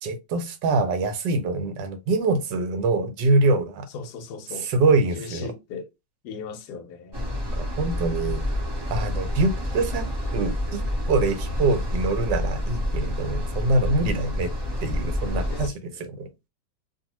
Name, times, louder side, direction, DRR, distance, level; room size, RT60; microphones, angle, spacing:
voice 1, 0.0-3.8 4.6-5.5 7.5-8.4 8.9-14.5 14.8-15.7 16.0-16.3, right 3 dB, 80° right, 1.3 m, -24 dB
voice 2, 3.9-4.7 5.2-5.9 6.2-7.4 14.3-14.4 15.5-16.3, left 5 dB, 70° left, 1.1 m, -38 dB
sound 1, 7.1-15.7, left 1 dB, 40° right, 0.3 m, -28 dB
2.6 x 2.5 x 2.9 m
omnidirectional pair, 1.9 m